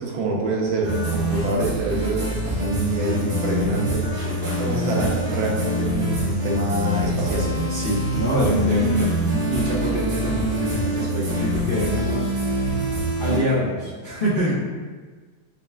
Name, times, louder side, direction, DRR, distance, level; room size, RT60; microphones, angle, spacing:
voice 1, 0.0-4.0 4.5-7.5, right 2 dB, 85° right, -2 dB, 1.5 m, -25 dB
sound 1, 0.8-13.4, right 1 dB, 45° right, 0.4 m, -25 dB
voice 2, 4.0-4.8 7.1-12.9 13.2-14.5, equal, 85° left, -10 dB, 0.4 m, -26 dB
4.1 x 3.2 x 2.2 m, 1.4 s
omnidirectional pair, 2.1 m